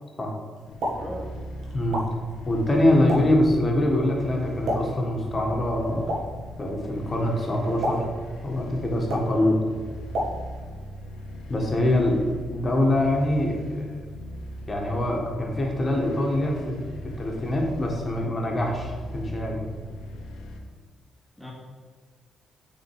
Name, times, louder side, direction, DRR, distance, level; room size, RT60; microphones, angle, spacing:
Explosion, 0.6-10.8, equal, 70° right, 1.5 m, -35 dB
sound 1, 0.7-20.6, equal, 80° left, 1.0 m, -40 dB
voice 1, 0.8-1.3 9.3-9.7 11.7-12.4 21.4-21.5, equal, ahead, -5 dB, 2.1 m, -39 dB
voice 2, 1.7-2.0 2.4-6.0 6.6-8.1 8.4-9.5 11.5-12.2 12.5-13.9 14.7-16.7 17.2-19.6, left 1 dB, 30° left, 0 dB, 1.7 m, -24 dB
6.4 x 4.2 x 4.8 m, 1.5 s
supercardioid pair, 65°, 0 cm